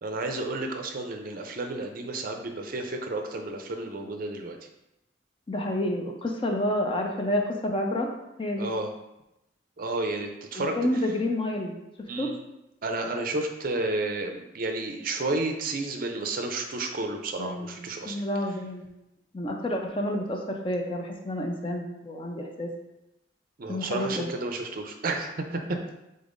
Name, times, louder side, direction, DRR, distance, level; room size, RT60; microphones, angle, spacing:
voice 1, 0.0-4.6 8.6-8.9 9.8-10.8 12.1-12.3 12.8-18.2 23.6-25.6, right 2 dB, 45° right, 4 dB, 0.5 m, -31 dB
voice 2, 5.5-8.1 8.4-8.7 10.6-12.3 17.4-17.8 18.0-18.9 19.3-22.7 23.7-24.3, left 1 dB, 25° left, 2 dB, 0.5 m, -29 dB
5.2 x 3.9 x 2.5 m, 0.90 s
head